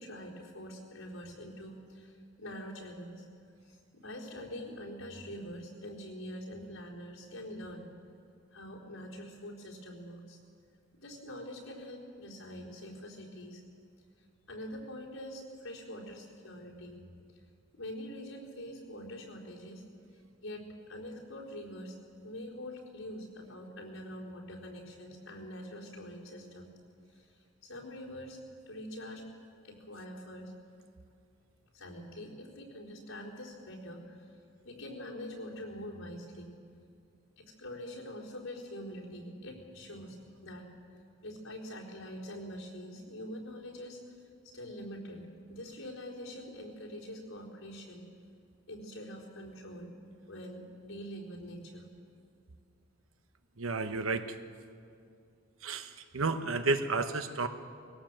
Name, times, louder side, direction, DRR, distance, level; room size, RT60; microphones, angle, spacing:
voice 1, 0.0-3.3 3.6-7.9 8.5-10.4 11.0-13.6 14.5-17.0 17.7-19.8 20.4-22.0 22.2-26.7 27.1-28.4 28.7-29.2 29.6-30.5 31.7-34.2 34.6-36.5 37.4-40.7 41.2-44.0 44.5-48.0 48.7-49.9 50.3-51.9, equal, 80° left, -3 dB, 4.2 m, -44 dB
voice 2, 53.6-54.4 55.6-57.5, right 3 dB, 75° right, 9 dB, 1.1 m, -31 dB
21.0 x 17.5 x 7.7 m, 2.4 s
head